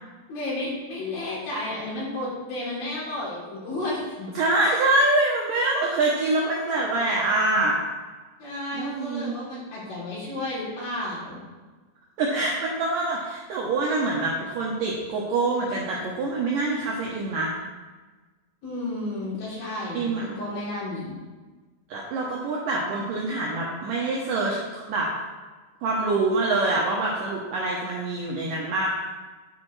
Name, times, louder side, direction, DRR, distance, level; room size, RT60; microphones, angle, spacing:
voice 1, 0.3-4.3 8.4-11.4 18.6-21.2, left 2 dB, 55° left, -7 dB, 4.6 m, -32 dB
voice 2, 4.4-7.8 8.7-9.4 12.2-17.5 19.9-20.4 21.9-25.1 25.8-28.9, right 2 dB, 75° right, -2 dB, 2.0 m, -25 dB
9.9 x 8.2 x 3.2 m, 1.3 s
omnidirectional pair, 5.0 m